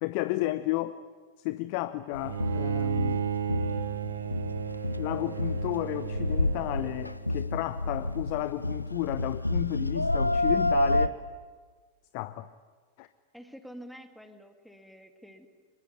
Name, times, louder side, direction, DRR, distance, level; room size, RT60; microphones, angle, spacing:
voice 1, 0.0-1.0 1.4-3.3 5.0-11.2 12.1-12.5 13.0-13.1, left 17 dB, 45° left, 13 dB, 0.8 m, -32 dB
sound 1, 2.1-11.1, left 2 dB, 85° left, 0.8 m, -29 dB
Bowed string instrument, 2.2-7.4, right 8 dB, 65° right, 1.2 m, -34 dB
voice 2, 13.3-15.5, equal, ahead, 6 dB, 2.4 m, -48 dB
25.0 x 22.0 x 9.8 m, 1.5 s
figure-of-eight pair, 90°, 0 cm